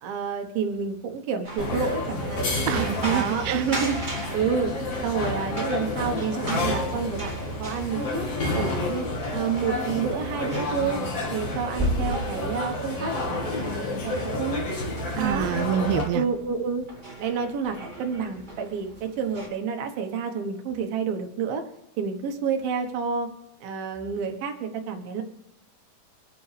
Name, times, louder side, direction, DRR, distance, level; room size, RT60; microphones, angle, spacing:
voice 1, 0.0-2.4 3.1-4.0 4.3-8.3 8.6-9.1 9.3-11.0 11.3-13.8 14.0-14.6 15.2-15.5 16.1-16.9 17.2-21.6 22.0-23.3 23.6-25.2, right 6 dB, 70° right, 4 dB, 2.8 m, -29 dB
sound 1, 1.4-19.5, right 1 dB, 20° right, 1.5 m, -37 dB
sound 2, 1.6-16.1, left 2 dB, 40° left, 3.2 m, -30 dB
voice 2, 2.7-3.6 15.1-16.2, right 10 dB, 85° right, 11 dB, 2.1 m, -26 dB
sound 3, 8.0-15.6, left 4 dB, 85° left, 5.4 m, -46 dB
25.5 x 9.9 x 3.4 m, 0.90 s
omnidirectional pair, 4.7 m